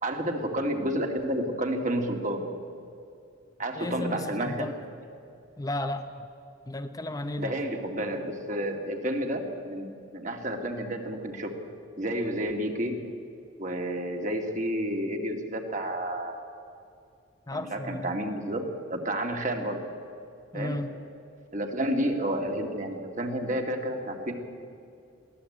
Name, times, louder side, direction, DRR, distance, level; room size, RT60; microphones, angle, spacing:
voice 1, 0.0-2.5 3.6-4.7 7.4-11.6 12.0-13.0 13.6-16.4 17.5-18.6 18.9-19.8 20.5-20.8 21.5-24.3, right 1 dB, 40° right, 3 dB, 2.3 m, -30 dB
voice 2, 3.8-4.7 5.6-6.1 6.7-7.5 17.5-18.1 20.5-21.0, left 1 dB, 20° left, 7 dB, 0.8 m, -34 dB
22.5 x 16.0 x 8.7 m, 2.5 s
head